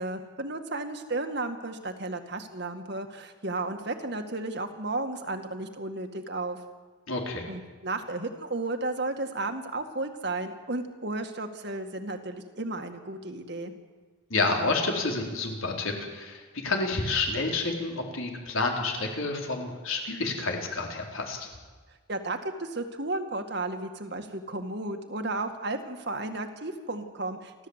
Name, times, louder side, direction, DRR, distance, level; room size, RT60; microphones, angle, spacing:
voice 1, 0.0-6.6 7.5-13.7 22.1-27.5, right 2 dB, 55° right, 6 dB, 2.0 m, -33 dB
voice 2, 7.1-7.5 14.3-21.5, left 3 dB, 85° left, 1 dB, 4.2 m, -29 dB
29.5 x 13.0 x 8.2 m, 1.4 s
head